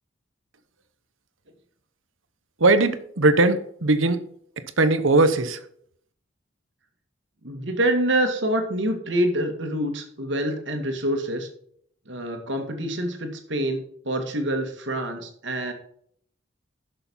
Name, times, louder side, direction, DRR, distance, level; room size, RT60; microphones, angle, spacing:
voice 1, 2.6-4.2 4.8-5.6, right 2 dB, 90° right, 12 dB, 1.1 m, -19 dB
voice 2, 7.4-11.5 12.1-15.7, right 1 dB, 70° right, 4 dB, 2.3 m, -26 dB
11.0 x 6.9 x 5.6 m, 0.65 s
head